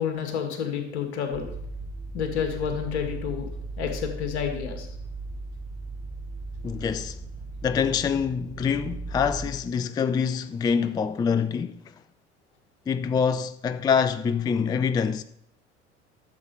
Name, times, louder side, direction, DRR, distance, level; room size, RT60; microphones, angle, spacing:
voice 1, 0.0-1.5 2.1-3.5 3.8-4.9, left 8 dB, 70° left, 2.1 m, -29 dB
sound 1, 1.3-9.5, right 3 dB, 20° right, 4.0 m, -37 dB
voice 2, 6.6-7.2 7.6-11.8 12.9-15.2, left 6 dB, 10° left, 0.4 m, -25 dB
12.0 x 7.2 x 4.9 m
figure-of-eight pair, 65°, 35 cm